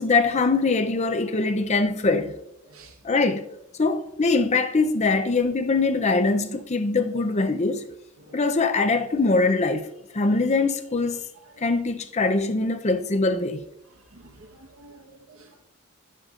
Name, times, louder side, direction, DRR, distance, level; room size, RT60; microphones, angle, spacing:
voice 1, 0.0-2.3 3.0-3.5 3.8-7.8 8.3-11.2 11.6-13.6, left 3 dB, 30° left, 0.6 m, -22 dB
voice 2, 14.1-15.6, right 2 dB, 70° right, 1.2 m, -50 dB
11.0 x 7.5 x 2.5 m
head